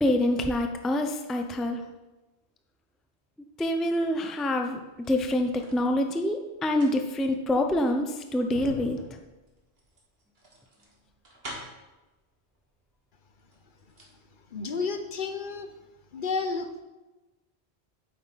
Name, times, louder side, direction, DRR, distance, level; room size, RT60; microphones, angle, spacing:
voice 1, 0.0-1.8 3.6-4.8 5.1-9.0, left 1 dB, ahead, 4 dB, 0.4 m, -26 dB
sound 1, 4.9-5.8 6.6-11.9 12.9-13.0 13.4-14.2 14.5-14.6, equal, 65° right, 1.9 m, -45 dB
voice 2, 14.5-15.8 16.1-16.8, left 4 dB, 55° left, 8 dB, 0.8 m, -31 dB
8.7 x 8.2 x 4.0 m, 1.1 s
omnidirectional pair, 1.1 m